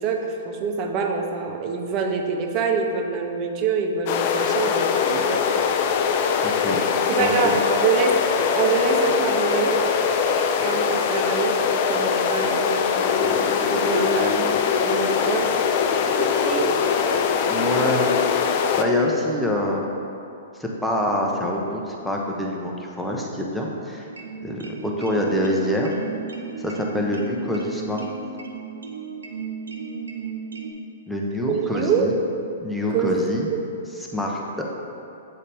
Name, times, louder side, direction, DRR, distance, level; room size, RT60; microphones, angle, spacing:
voice 1, 0.0-5.5 7.1-8.2 8.5-9.8 10.6-14.5 14.8-15.5 16.0-16.8 31.5-32.1 32.9-33.6, right 5 dB, 35° right, 3 dB, 0.7 m, -25 dB
sound 1, 4.1-18.8, left 6 dB, 45° left, 0.4 m, -22 dB
voice 2, 6.4-6.8 7.2-7.6 17.5-18.2 18.4-19.9 20.5-24.1 24.4-25.9 26.6-28.0 31.1-32.2 32.6-33.5 34.1-34.6, left 1 dB, 5° left, -2 dB, 0.8 m, -26 dB
sound 2, 24.1-30.7, right 5 dB, 85° right, 0.5 m, -34 dB
7.5 x 4.1 x 3.4 m, 2.7 s
hypercardioid pair, 115°, 0 cm